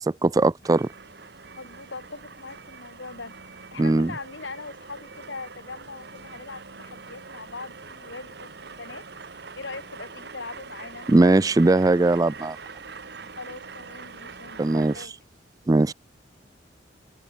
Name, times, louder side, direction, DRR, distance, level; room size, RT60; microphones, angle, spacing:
voice 1, 0.1-0.9 3.8-4.1 11.1-12.6 14.6-14.9 15.7-15.9, right 2 dB, 20° right, 0.4 m, -19 dB
sound 1, 0.6-15.1, right 4 dB, 60° right, 1.5 m, -43 dB
voice 2, 1.6-11.1 13.4-15.1, left 3 dB, 85° left, 2.6 m, -41 dB
head